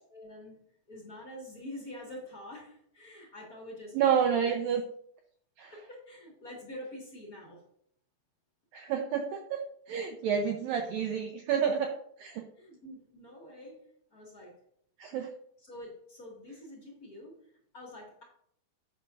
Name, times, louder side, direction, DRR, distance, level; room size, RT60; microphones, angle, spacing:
voice 1, 0.1-4.6 5.7-7.6 12.6-14.6 15.6-18.2, left 1 dB, 40° left, -2 dB, 1.2 m, -46 dB
voice 2, 3.9-4.8 5.6-5.7 8.7-9.6 9.9-12.4 15.0-15.3, right 7 dB, 90° right, 4 dB, 2.0 m, -29 dB
10.5 x 8.6 x 2.6 m, 0.68 s
omnidirectional pair, 5.0 m